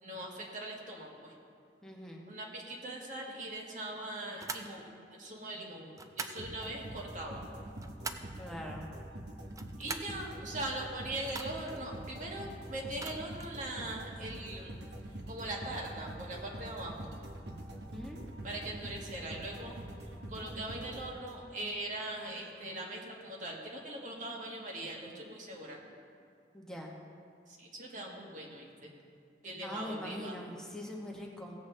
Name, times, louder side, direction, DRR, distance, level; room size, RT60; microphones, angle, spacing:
voice 1, 0.0-1.3 2.3-4.9 5.2-7.4 9.8-14.8 15.3-17.1 18.4-19.8 20.3-25.8 27.5-28.9 29.4-30.4, right 1 dB, 45° right, -1 dB, 1.5 m, -41 dB
voice 2, 1.8-2.2 8.4-8.9 17.9-18.2 26.5-26.9 29.6-31.5, left 1 dB, 5° left, -2 dB, 1.1 m, -42 dB
sound 1, 4.4-4.7 5.9-6.4 7.5-8.4 9.4-10.2 11.3-11.8 12.9-13.6, right 4 dB, 20° right, 0.4 m, -42 dB
sound 2, 6.4-21.6, right 1 dB, 70° right, 1.0 m, -45 dB
16.5 x 8.0 x 3.3 m, 2.3 s
head